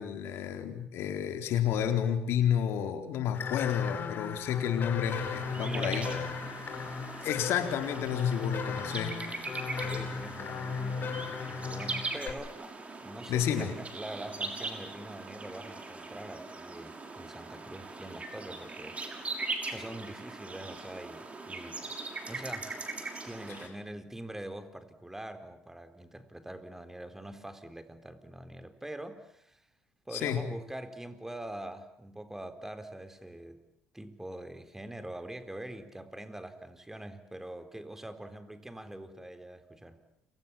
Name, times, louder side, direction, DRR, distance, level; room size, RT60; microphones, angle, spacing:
voice 1, 0.0-6.1 7.2-9.2 13.3-13.7 30.1-30.5, left 9 dB, 70° left, 6 dB, 4.1 m, -30 dB
sound 1, 3.3-12.3, left 5 dB, 50° left, 4.9 m, -36 dB
sound 2, 5.0-23.7, right 3 dB, 30° right, 6.1 m, -41 dB
voice 2, 5.6-6.4 9.7-12.7 13.0-19.0 19.7-21.9 22.3-22.7 23.2-29.6 30.1-33.6 33.9-40.0, right 1 dB, 10° right, 8 dB, 4.1 m, -44 dB
30.0 x 25.0 x 7.3 m, 0.73 s
supercardioid pair, 70°, 4 cm